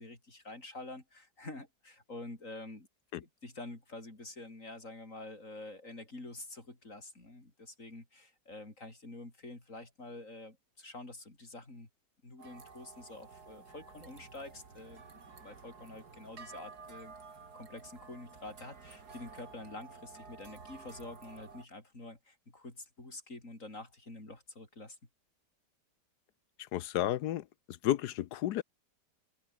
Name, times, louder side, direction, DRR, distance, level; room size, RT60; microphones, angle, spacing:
voice 1, 0.0-2.9 3.2-11.9 12.2-17.1 17.5-25.0, left 2 dB, 45° left, 5.7 m, -47 dB
sound 1, 12.4-21.7, right 5 dB, 65° right, 3.2 m, -52 dB
voice 2, 26.7-28.6, left 13 dB, 75° left, 1.2 m, -32 dB
open air
omnidirectional pair, 1.9 m